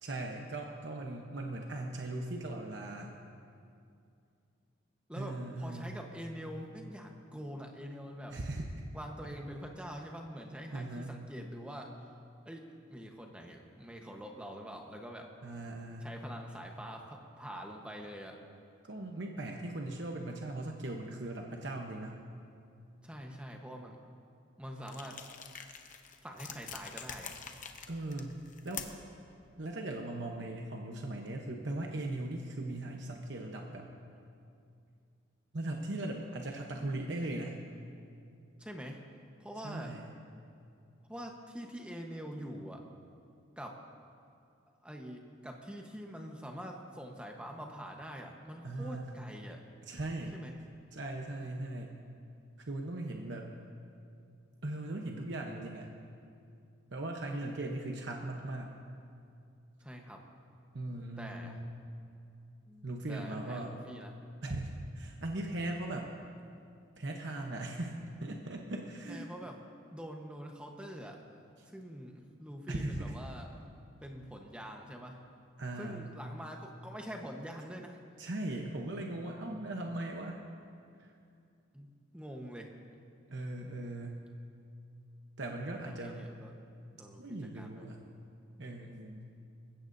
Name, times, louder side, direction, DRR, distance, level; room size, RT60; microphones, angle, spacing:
voice 1, 0.0-3.1 5.2-6.0 8.3-8.7 10.7-11.1 15.4-16.1 18.8-22.2 27.9-28.3 28.6-28.9 29.6-33.9 35.5-37.6 39.6-40.2 48.6-49.1 49.8-50.4 50.9-52.0 52.7-53.5 54.6-55.9 56.9-58.7 60.7-61.7 62.8-63.8 64.4-66.1 67.0-69.3 72.7-73.1 75.6-76.0 78.2-80.4 81.0-81.1 83.3-84.2 85.4-86.3 87.2-88.0 88.6-89.3, right 2 dB, 60° right, 1 dB, 1.0 m, -39 dB
voice 2, 5.1-8.4 8.9-12.0 12.4-15.3 16.0-18.4 23.0-24.0 24.6-25.5 26.2-27.4 38.6-39.0 39.4-40.0 41.1-42.8 43.6-43.8 44.8-49.6 50.3-50.5 59.8-60.2 61.2-61.6 62.7-64.1 69.1-69.6 69.9-75.2 75.8-78.0 81.7-82.7 85.7-86.6 86.9-87.9, equal, 5° right, 1 dB, 1.1 m, -45 dB
sound 1, 24.8-29.1, left 7 dB, 40° left, 0.8 m, -46 dB
21.0 x 16.0 x 2.7 m, 2.4 s
head